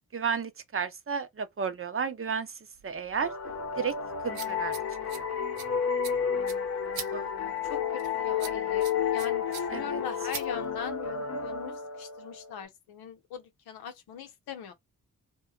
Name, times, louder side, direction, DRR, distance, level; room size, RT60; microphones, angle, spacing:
voice 1, 0.1-3.3 3.8-4.0 4.2-4.8 5.1-5.3 7.1-7.7 9.7-10.0, right 6 dB, 35° right, 0.7 m, -33 dB
sound 1, 2.8-11.1, right 8 dB, 80° right, 0.7 m, -45 dB
sound 2, 3.2-12.6, left 7 dB, 45° left, 0.7 m, -31 dB
voice 2, 7.6-14.7, left 8 dB, 85° left, 0.7 m, -41 dB
2.7 x 2.3 x 2.4 m
supercardioid pair, 45°, 37 cm